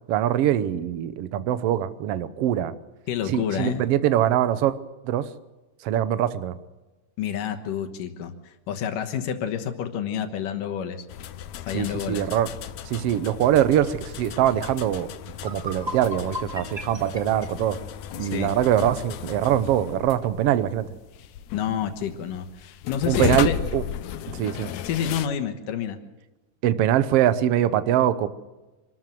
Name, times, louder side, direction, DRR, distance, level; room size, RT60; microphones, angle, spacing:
voice 1, 0.1-2.7 3.3-4.8 5.0-5.2 5.8-6.6 11.7-12.5 12.9-15.1 15.4-17.8 18.2-20.9 23.1-23.8 24.3-24.7 26.6-28.3, right 11 dB, 65° right, 13 dB, 1.5 m, -23 dB
voice 2, 3.1-3.8 7.2-11.0 11.6-12.3 18.2-18.5 21.5-23.6 24.8-26.0, left 8 dB, 85° left, 6 dB, 2.9 m, -29 dB
sound 1, 11.1-25.3, left 10 dB, 70° left, 1.8 m, -35 dB
sound 2, 15.3-18.4, equal, 10° right, 1.6 m, -37 dB
25.5 x 13.5 x 7.8 m, 1.1 s
omnidirectional pair, 3.7 m